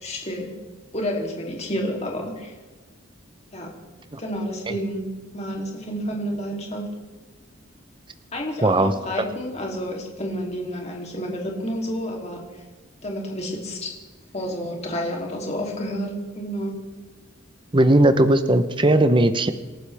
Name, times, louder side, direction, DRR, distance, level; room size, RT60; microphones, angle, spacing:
voice 1, 0.0-0.5 0.9-2.5 3.5-3.7 4.2-5.0 5.3-6.9 8.3-12.4 13.0-13.9 14.3-16.8, equal, 30° left, 0 dB, 3.0 m, -30 dB
voice 2, 8.6-8.9 9.2-9.3 17.7-19.5, right 1 dB, 25° right, 10 dB, 0.8 m, -17 dB
28.0 x 12.5 x 3.5 m, 1.3 s
head